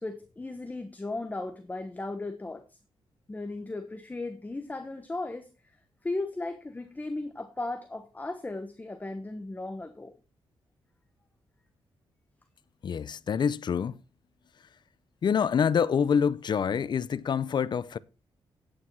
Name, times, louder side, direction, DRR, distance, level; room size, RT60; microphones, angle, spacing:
voice 1, 0.0-2.8 3.3-5.5 6.0-10.1, left 2 dB, 15° left, 1.1 m, -36 dB
voice 2, 12.8-13.9 15.2-18.0, left 7 dB, 50° left, 0.6 m, -26 dB
9.4 x 8.8 x 4.5 m
cardioid pair, 110°, 10 cm